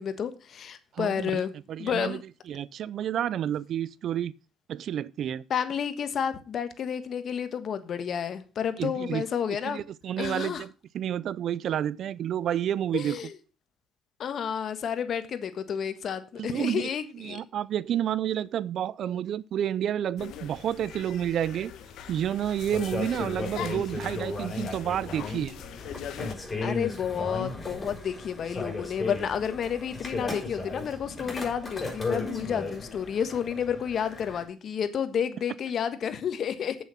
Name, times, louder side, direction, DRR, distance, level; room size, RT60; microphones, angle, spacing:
voice 1, 0.0-1.5 1.8-2.2 5.5-9.8 10.2-10.6 12.9-13.3 14.2-17.4 26.6-36.8, left 8 dB, 55° left, 1.4 m, -30 dB
voice 2, 1.0-1.4 1.7-2.2 2.5-4.3 4.7-5.4 8.8-9.2 9.6-13.2 16.4-16.9 17.1-21.7 22.1-25.5, right 10 dB, 60° right, 0.4 m, -30 dB
sound 1, 20.2-26.3, left 9 dB, 70° left, 1.3 m, -41 dB
sound 2, 22.7-34.4, left 3 dB, 25° left, 5.6 m, -35 dB
8.3 x 7.1 x 5.7 m
cardioid pair, 90°, 0 cm